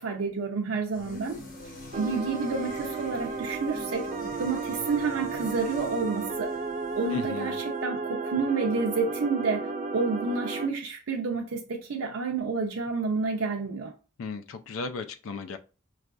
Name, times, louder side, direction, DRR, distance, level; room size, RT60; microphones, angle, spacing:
voice 1, 0.0-1.4 1.9-4.1 4.4-6.6 7.0-13.9, right 4 dB, 85° right, 0.5 m, -29 dB
sound 1, 0.9-7.8, left 1 dB, 45° left, 0.8 m, -46 dB
sound 2, 1.9-10.7, right 4 dB, 40° right, 0.5 m, -33 dB
voice 2, 7.1-7.6 14.2-15.6, left 4 dB, 75° left, 0.4 m, -36 dB
4.7 x 2.4 x 2.3 m
head